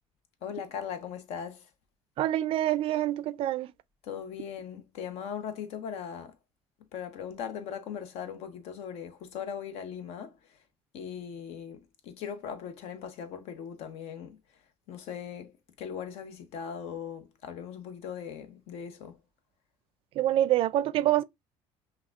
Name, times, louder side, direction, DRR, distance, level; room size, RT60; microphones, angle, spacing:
voice 1, 0.4-1.7 4.0-6.4 6.9-10.4 10.9-14.4 14.9-19.2, left 8 dB, 70° left, 0.9 m, -39 dB
voice 2, 2.2-3.7 20.2-21.2, right 13 dB, 60° right, 0.4 m, -26 dB
5.8 x 2.3 x 2.4 m
cardioid pair, 120°, 11 cm